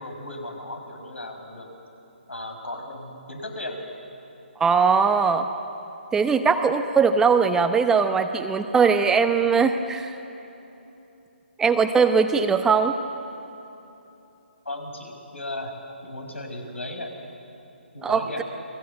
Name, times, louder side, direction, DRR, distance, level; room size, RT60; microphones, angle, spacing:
voice 1, 0.0-1.7 2.3-3.8 14.6-15.7 16.0-17.2 17.9-18.4, left 1 dB, 85° left, 3 dB, 6.0 m, -35 dB
voice 2, 4.6-5.5 6.1-10.2 11.6-12.9 18.0-18.4, right 5 dB, 10° right, 7 dB, 0.9 m, -20 dB
30.0 x 21.5 x 8.1 m, 2.9 s
figure-of-eight pair, 140°, 6 cm